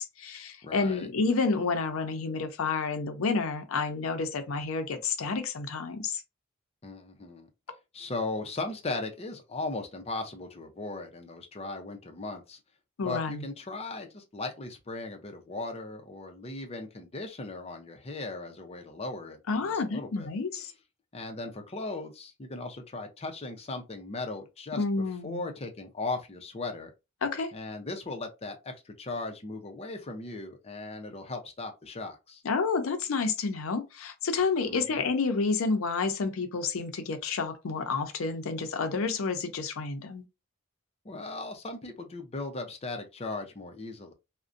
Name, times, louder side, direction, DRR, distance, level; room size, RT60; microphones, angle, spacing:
voice 1, 0.0-6.2 13.0-13.4 19.5-20.7 24.8-25.5 27.2-27.5 32.4-40.2, left 4 dB, 80° left, 0.5 m, -30 dB
voice 2, 0.6-1.1 6.8-7.5 7.9-12.6 13.0-20.3 21.1-24.8 25.2-26.9 27.5-32.4 34.7-35.0 41.0-44.1, left 2 dB, 30° left, 0.5 m, -37 dB
2.5 x 2.1 x 2.4 m
head